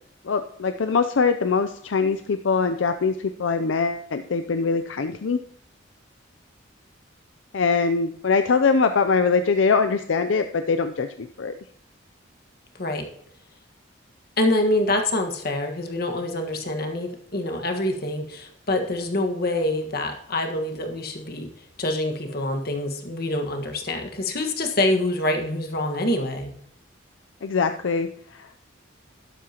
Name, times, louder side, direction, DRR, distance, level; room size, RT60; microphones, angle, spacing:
voice 1, 0.2-5.4 7.5-11.6 27.4-28.5, left 5 dB, 80° left, 8 dB, 0.5 m, -23 dB
voice 2, 14.4-21.5 21.8-26.5, left 1 dB, 50° left, 4 dB, 1.5 m, -26 dB
12.5 x 11.5 x 2.9 m, 0.67 s
head